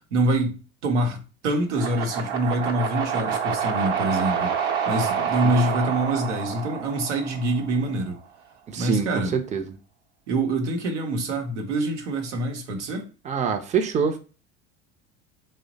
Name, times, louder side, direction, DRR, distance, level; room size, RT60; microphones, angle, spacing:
voice 1, 0.1-8.2 8.8-9.4 10.3-13.1, right 1 dB, 90° right, 0.8 m, -25 dB
sound 1, 1.7-7.9, right 7 dB, 55° right, 0.8 m, -28 dB
voice 2, 8.7-9.6 13.3-14.2, right 6 dB, 20° right, 0.5 m, -25 dB
3.1 x 2.1 x 4.0 m
hypercardioid pair, 90°, 34 cm